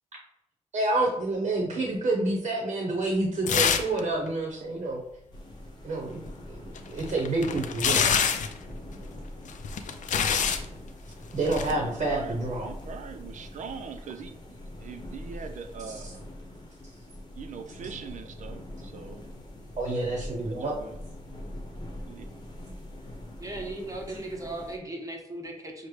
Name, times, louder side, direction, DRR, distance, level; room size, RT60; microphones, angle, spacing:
voice 1, 0.7-5.0 5.8-6.2 6.5-8.2 11.3-12.7 19.8-20.8, right 2 dB, 60° right, 0 dB, 0.8 m, -28 dB
sound 1, 3.5-4.0 4.3-4.4 6.8-8.6 9.5-10.7 11.5-11.7, left 7 dB, 85° left, 0.4 m, -25 dB
sound 2, 5.3-24.8, left 1 dB, 35° left, 1.0 m, -43 dB
voice 2, 11.7-16.2 17.4-19.2 20.4-21.0 22.1-22.3, right 6 dB, 80° right, 8 dB, 0.5 m, -42 dB
voice 3, 23.4-25.9, right 2 dB, 25° right, 1 dB, 0.9 m, -37 dB
6.3 x 2.1 x 3.1 m, 0.81 s
wide cardioid pair, 95°, 13 cm